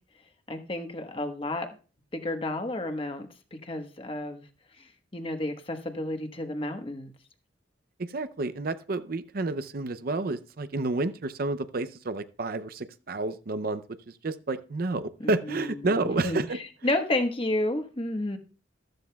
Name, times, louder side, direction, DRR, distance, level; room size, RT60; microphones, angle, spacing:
voice 1, 0.5-1.7 2.1-3.3 3.6-4.4 4.8-7.1 15.2-15.9 16.2-18.4, left 1 dB, 30° left, 6 dB, 1.2 m, -31 dB
voice 2, 8.0-16.6, right 2 dB, 55° right, 12 dB, 0.6 m, -30 dB
14.0 x 13.0 x 2.3 m, 0.36 s
head